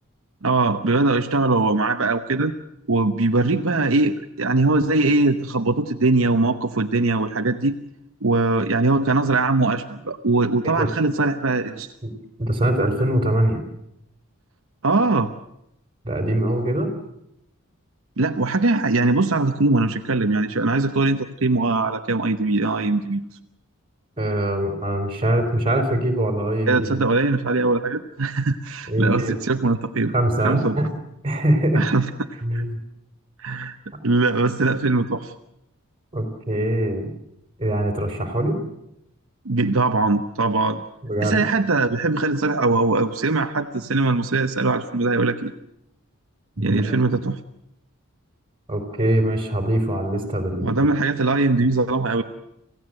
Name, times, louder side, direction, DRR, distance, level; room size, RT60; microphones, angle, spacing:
voice 1, 0.4-2.5 2.9-7.8 8.2-11.9 14.8-15.3 18.2-23.3 26.7-30.1 30.4-30.8 31.7-32.6 33.4-33.8 34.0-35.3 39.4-40.8 41.2-45.5 46.6-47.4 50.6-52.2, right 3 dB, 65° right, 6 dB, 0.9 m, -21 dB
voice 2, 12.4-13.6 16.0-16.9 24.2-27.0 28.9-29.4 30.1-30.9 31.2-31.8 32.4-32.8 36.1-37.1 37.6-38.6 41.0-41.4 46.6-47.0 48.7-50.7, right 1 dB, 25° right, 6 dB, 4.0 m, -23 dB
27.0 x 16.0 x 7.8 m, 0.81 s
head